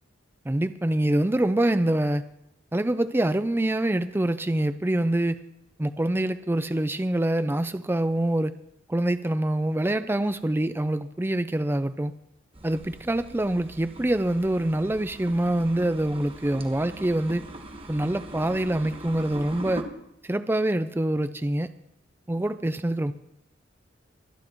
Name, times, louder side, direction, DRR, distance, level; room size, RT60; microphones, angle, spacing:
voice 1, 0.5-2.2 2.7-5.4 5.8-8.5 8.9-12.1 12.6-17.5 17.9-19.9 20.2-21.7 22.3-23.1, right 1 dB, 10° right, 0.4 m, -25 dB
sound 1, 12.5-19.8, right 1 dB, 30° right, 1.3 m, -41 dB
25.0 x 9.9 x 3.1 m
head